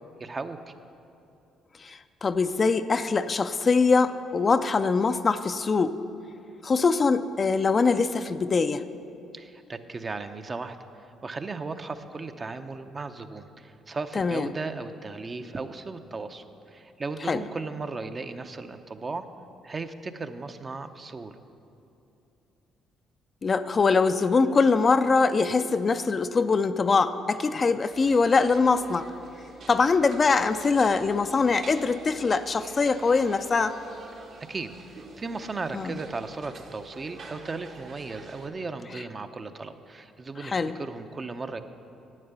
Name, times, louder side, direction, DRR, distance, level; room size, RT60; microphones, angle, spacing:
voice 1, 0.2-0.7 9.3-19.2 19.6-21.4 34.5-41.6, right 3 dB, 35° right, 8 dB, 0.7 m, -36 dB
voice 2, 1.8-6.0 6.6-8.8 14.2-14.5 17.3-17.4 23.4-29.1 29.7-33.8 35.7-35.9 40.4-40.8, left 4 dB, 40° left, 10 dB, 0.5 m, -23 dB
sound 1, 27.9-38.5, right 3 dB, 65° right, 1.6 m, -47 dB
11.0 x 8.7 x 6.9 m, 2.8 s
supercardioid pair, 65°, 0 cm